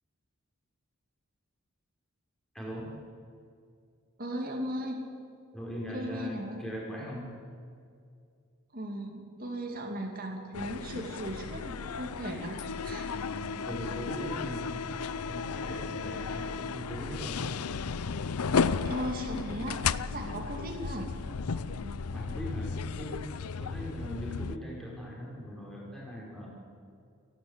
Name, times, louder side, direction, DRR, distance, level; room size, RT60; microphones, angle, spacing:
voice 1, 2.5-2.9 5.5-7.4 13.1-14.8 15.3-17.6 20.0-20.4 21.5-26.5, equal, ahead, -5 dB, 5.0 m, -40 dB
voice 2, 4.2-5.0 5.9-6.6 8.7-13.1 18.8-19.8 20.1-21.1, right 1 dB, 40° right, 1 dB, 2.7 m, -37 dB
sound 1, 10.5-24.6, left 5 dB, 90° left, 0.6 m, -34 dB
29.5 x 12.0 x 8.2 m, 2.3 s
head